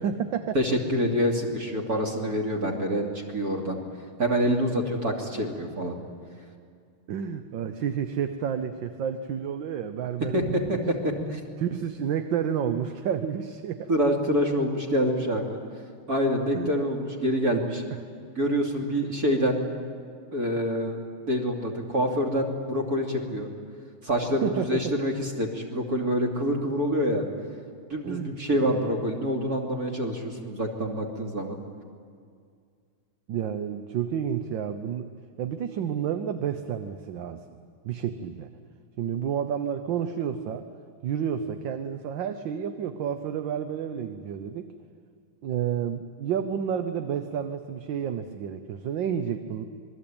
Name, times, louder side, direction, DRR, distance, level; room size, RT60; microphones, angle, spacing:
voice 1, 0.0-0.6 7.1-10.8 11.6-13.9 16.5-16.8 19.0-19.1 24.3-24.9 28.0-28.8 33.3-35.1 35.4-37.4 37.8-38.5 39.0-40.6 41.0-44.7 45.4-49.6, right 8 dB, 70° right, 8 dB, 1.6 m, -30 dB
voice 2, 0.5-3.8 4.2-5.9 10.3-11.4 13.9-15.6 16.1-17.8 18.4-19.6 20.3-21.0 21.3-23.5 24.0-27.2 27.9-31.6, equal, 45° right, 1 dB, 3.3 m, -26 dB
27.0 x 21.5 x 8.8 m, 2.2 s
omnidirectional pair, 2.2 m